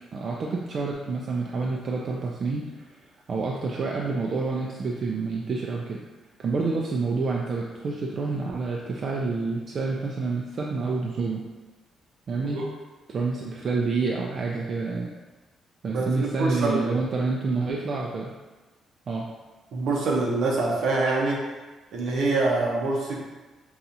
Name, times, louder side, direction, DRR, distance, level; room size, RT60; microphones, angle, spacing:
voice 1, 0.1-2.9 3.3-6.0 6.4-11.4 12.3-12.6 13.1-15.1 15.8-18.3 19.1-19.2, right 4 dB, 50° right, -2 dB, 0.4 m, -28 dB
voice 2, 15.9-17.0 19.7-21.4 21.9-23.2, right 3 dB, 75° right, -2 dB, 0.7 m, -25 dB
4.1 x 2.3 x 2.6 m, 1.2 s
cardioid pair, 90°, 0 cm